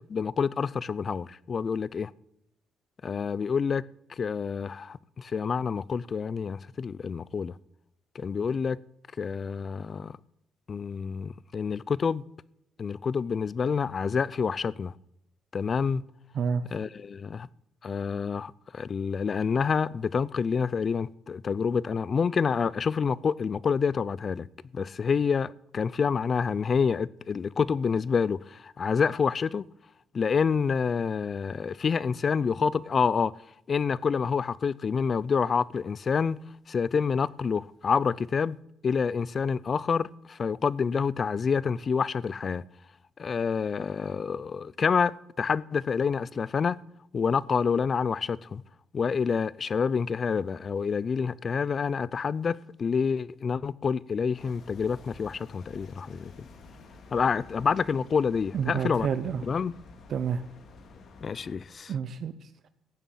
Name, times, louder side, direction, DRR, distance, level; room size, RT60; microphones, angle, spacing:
voice 1, 0.1-2.1 3.0-3.8 4.2-7.5 8.1-8.8 9.2-10.1 10.7-12.2 12.8-14.9 15.5-16.0 16.7-17.5 17.8-24.5 24.7-29.6 30.1-33.3 33.7-36.4 36.7-38.6 38.8-42.6 43.2-46.8 47.1-48.6 48.9-56.3 57.1-59.1 59.4-59.7 61.2-61.9, left 6 dB, 45° left, 0.5 m, -28 dB
sound 1, 54.4-61.6, left 4 dB, 60° left, 2.7 m, -50 dB
voice 2, 58.5-59.4 60.1-60.4 61.9-62.7, right 6 dB, 65° right, 0.9 m, -29 dB
16.0 x 7.2 x 9.3 m
cardioid pair, 90°, 0 cm